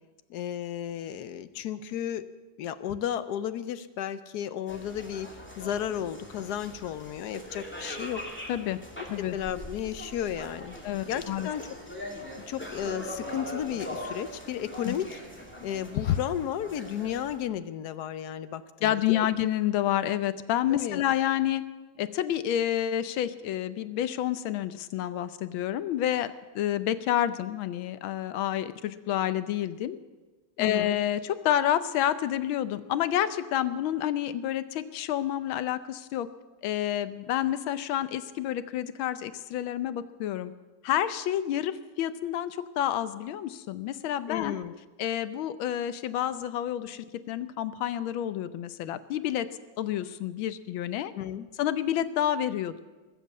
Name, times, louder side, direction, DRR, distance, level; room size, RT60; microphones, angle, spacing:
voice 1, 0.3-2.2 2.6-8.2 9.0-10.8 11.1-11.7 12.5-15.2 15.6-19.3 20.7-21.0 30.6-31.0 44.3-44.8 51.1-51.5, left 10 dB, 70° left, 13 dB, 1.0 m, -33 dB
sound 1, 4.7-17.4, equal, 5° left, 2.4 m, -41 dB
voice 2, 10.8-11.5 14.8-14.9 18.8-21.6 22.0-30.0 30.6-36.3 36.6-40.5 40.8-44.5 45.0-49.5 49.8-51.1 51.6-52.8, left 11 dB, 85° left, 13 dB, 1.5 m, -29 dB
20.5 x 7.5 x 8.2 m, 1.2 s
omnidirectional pair, 2.2 m